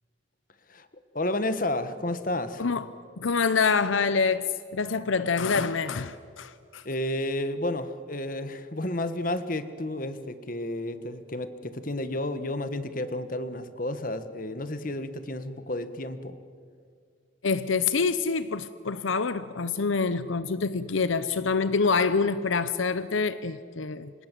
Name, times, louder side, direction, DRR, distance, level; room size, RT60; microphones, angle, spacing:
voice 1, 1.1-2.6 6.8-16.4, left 1 dB, 45° left, 1.5 m, -31 dB
voice 2, 3.2-4.5 4.7-6.8 17.4-24.1, left 4 dB, 80° left, 0.8 m, -26 dB
29.5 x 26.0 x 7.7 m
head